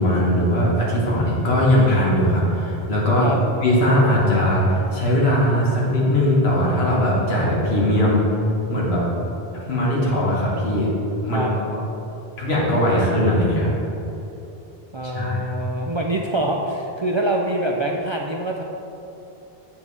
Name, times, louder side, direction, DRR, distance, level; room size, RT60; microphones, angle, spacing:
voice 1, 0.0-3.3 3.6-8.2 8.7-9.0 9.7-10.9 11.2-11.6 12.4-13.7 15.0-15.4, equal, 85° left, -5 dB, 1.6 m, -19 dB
voice 2, 14.9-18.6, right 1 dB, 45° right, -1 dB, 0.3 m, -25 dB
8.0 x 7.2 x 3.3 m, 2.9 s
omnidirectional pair, 1.0 m